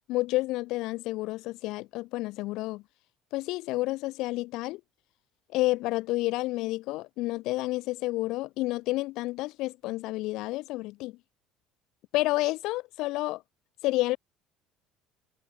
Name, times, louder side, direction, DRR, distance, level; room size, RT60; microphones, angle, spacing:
voice 1, 0.1-2.8 3.3-4.8 5.5-11.2 12.1-13.4 13.8-14.2, left 19 dB, 70° left, 3.2 m, -30 dB
supercardioid pair, 100°, 0 cm